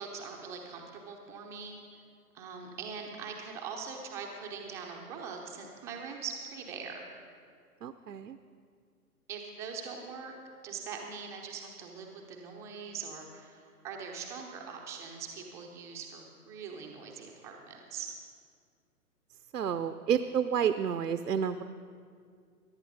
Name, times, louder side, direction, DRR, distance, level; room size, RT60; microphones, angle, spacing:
voice 1, 0.0-1.8 2.3-7.1 9.3-10.3 10.6-18.1, right 6 dB, 5° right, 1 dB, 0.5 m, -42 dB
voice 2, 7.8-8.4 19.5-21.6, right 8 dB, 75° right, 10 dB, 0.7 m, -30 dB
22.5 x 11.0 x 4.0 m, 2.2 s
figure-of-eight pair, 120°, 48 cm